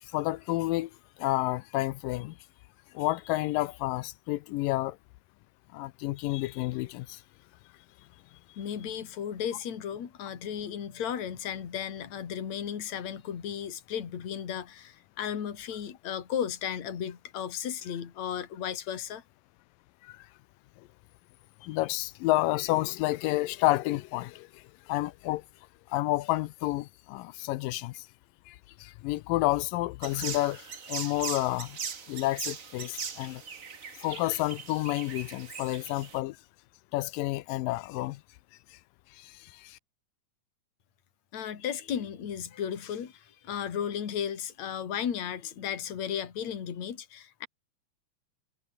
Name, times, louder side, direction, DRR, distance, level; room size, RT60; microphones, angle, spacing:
voice 1, 0.0-2.4 2.9-5.0 5.7-7.2 20.0-20.3 20.8-20.9 21.6-25.4 25.9-28.1 28.5-31.8 32.1-33.4 33.9-36.4 36.9-38.2 38.7-38.8 39.1-39.8, left 18 dB, 85° left, 2.3 m, -30 dB
voice 2, 8.6-19.2 41.3-47.5, left 8 dB, 55° left, 3.7 m, -35 dB
sound 1, 30.0-36.2, right 6 dB, 50° right, 1.0 m, -40 dB
omnidirectional pair, 3.9 m